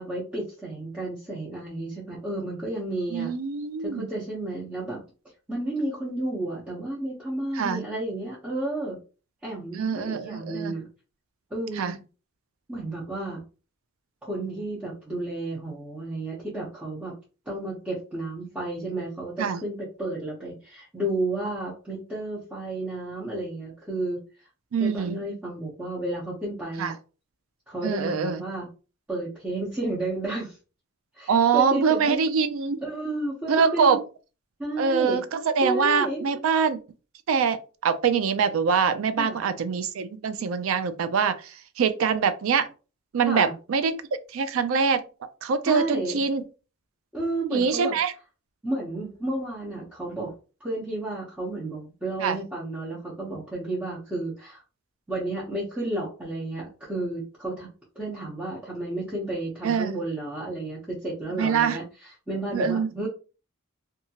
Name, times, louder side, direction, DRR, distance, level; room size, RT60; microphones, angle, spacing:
voice 1, 0.0-3.3 3.8-5.0 5.5-9.0 9.4-10.8 11.5-12.0 12.7-13.4 14.2-17.1 17.5-24.2 24.8-27.0 27.7-28.7 29.1-30.6 31.1-32.2 32.8-34.0 34.6-35.2 35.6-36.2 39.2-39.4 43.3-43.5 45.6-46.2 47.1-48.0 48.6-50.3 50.6-54.6 55.1-57.7 58.0-61.8 62.3-63.1, right 2 dB, 5° right, -7 dB, 0.7 m, -32 dB
voice 2, 3.1-4.1 7.5-7.8 9.8-10.7 11.7-12.0 19.4-19.6 24.7-25.2 26.8-26.9 27.8-28.4 31.3-32.8 33.5-34.0 34.8-36.8 37.3-42.7 43.1-44.0 44.3-45.0 45.4-46.4 47.5-48.1 52.2-52.4 59.6-59.9 61.3-61.8 62.5-62.9, right 6 dB, 70° right, 11 dB, 0.4 m, -24 dB
2.8 x 2.3 x 2.8 m, 0.34 s
head